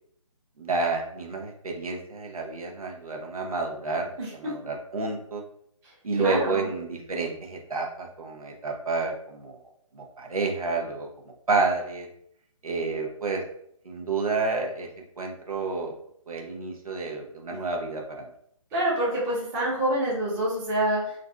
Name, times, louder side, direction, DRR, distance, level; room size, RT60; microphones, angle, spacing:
voice 1, 0.6-5.4 6.0-9.6 9.9-12.1 12.6-13.4 13.8-14.9 15.2-16.0 16.3-18.3, right 3 dB, 85° right, 1 dB, 0.7 m, -30 dB
voice 2, 6.2-6.7 18.7-21.1, right 1 dB, 15° right, -6 dB, 0.9 m, -26 dB
2.5 x 2.5 x 3.2 m, 0.68 s
figure-of-eight pair, 145°, 18 cm